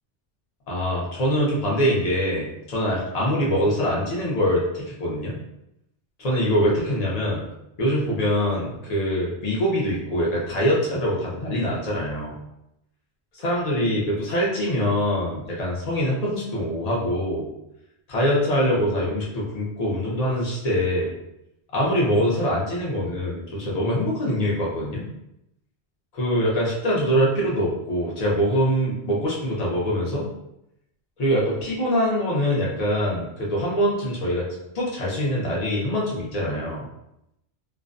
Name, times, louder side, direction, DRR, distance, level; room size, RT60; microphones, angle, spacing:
voice 1, 0.7-5.4 6.2-7.4 7.8-12.3 13.4-17.5 18.1-21.1 21.7-25.0 26.1-30.2 31.2-34.5 34.7-36.8, equal, 40° left, -4 dB, 0.7 m, -24 dB
2.4 x 2.1 x 2.5 m, 0.84 s
omnidirectional pair, 1.2 m